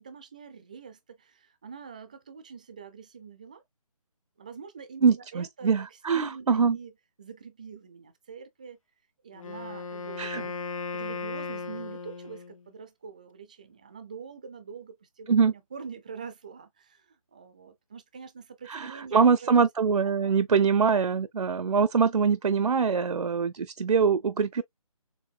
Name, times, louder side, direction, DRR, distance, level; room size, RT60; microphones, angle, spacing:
voice 1, 0.0-3.6 4.4-6.9 7.2-8.8 9.2-10.6 10.9-19.5 20.2-20.4, right 6 dB, 15° right, 0.4 m, -45 dB
voice 2, 5.0-6.8 10.2-10.4 15.3-15.5 18.7-24.6, right 6 dB, 80° right, 0.6 m, -23 dB
Wind instrument woodwind instrument, 9.3-12.6, left 4 dB, 60° left, 0.6 m, -36 dB
6.9 x 2.6 x 2.4 m
figure-of-eight pair, 160°, 19 cm